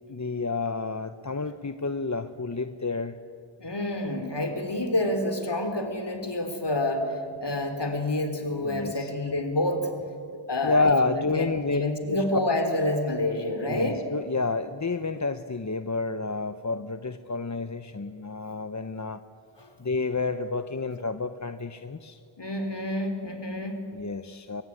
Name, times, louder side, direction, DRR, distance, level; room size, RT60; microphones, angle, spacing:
voice 1, 0.1-3.2 8.6-9.1 10.6-11.8 12.1-12.3 13.7-19.2 19.8-22.2 23.9-24.6, left 3 dB, 35° left, 9 dB, 1.0 m, -29 dB
voice 2, 3.6-9.9 10.5-14.0 19.6-19.7 22.4-23.8, left 1 dB, 55° left, 6 dB, 4.0 m, -28 dB
24.5 x 22.0 x 9.9 m, 2.3 s
wide cardioid pair, 45°, 48 cm